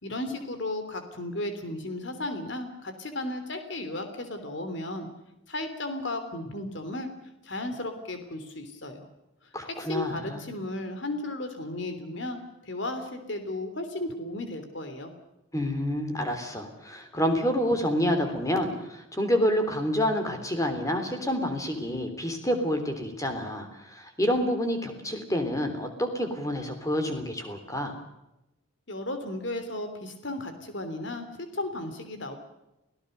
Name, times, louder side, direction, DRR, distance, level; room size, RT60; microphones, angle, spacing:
voice 1, 0.0-5.1 5.5-7.1 7.4-9.1 9.9-15.1 28.9-32.4, left 2 dB, 60° left, 8 dB, 3.2 m, -34 dB
voice 2, 9.5-10.4 15.5-27.9, equal, 15° left, 6 dB, 3.4 m, -28 dB
29.0 x 17.5 x 6.7 m, 0.90 s
head